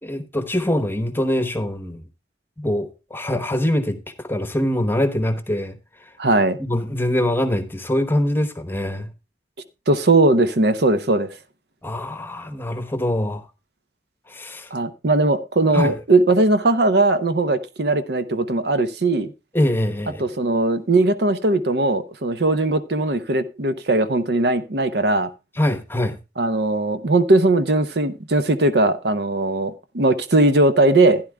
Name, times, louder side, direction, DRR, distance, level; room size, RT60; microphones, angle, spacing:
voice 1, 0.0-2.0 2.6-6.1 6.6-9.1 11.8-13.4 14.3-14.7 15.7-15.9 19.5-20.2 25.6-26.2, left 1 dB, 10° left, 1.0 m, -23 dB
voice 2, 6.2-6.6 9.9-11.3 14.7-19.3 20.2-25.3 26.4-31.2, right 2 dB, 65° right, 0.8 m, -19 dB
15.0 x 10.5 x 2.2 m
head